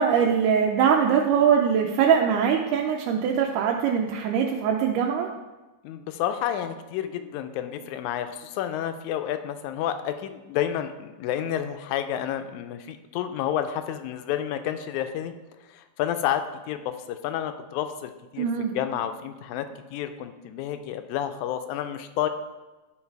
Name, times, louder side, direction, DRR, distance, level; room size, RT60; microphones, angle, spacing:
voice 1, 0.0-5.3 18.4-18.7, right 7 dB, 85° right, 0 dB, 2.1 m, -22 dB
voice 2, 5.8-15.3 15.7-22.3, left 10 dB, 80° left, 9 dB, 1.9 m, -30 dB
11.5 x 4.0 x 4.6 m, 1.1 s
omnidirectional pair, 3.6 m